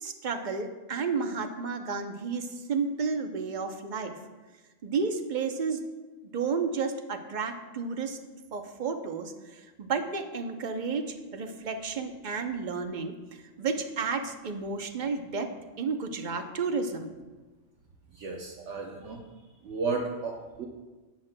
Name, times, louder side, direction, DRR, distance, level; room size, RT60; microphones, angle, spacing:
voice 1, 0.0-4.2 4.8-5.8 6.3-8.2 8.5-13.2 13.6-15.5 15.8-17.1, right 5 dB, 45° right, 6 dB, 0.7 m, -32 dB
voice 2, 18.1-19.2 19.6-20.7, right 4 dB, 65° right, 0 dB, 1.0 m, -33 dB
13.0 x 9.2 x 2.2 m, 1.2 s
omnidirectional pair, 1.3 m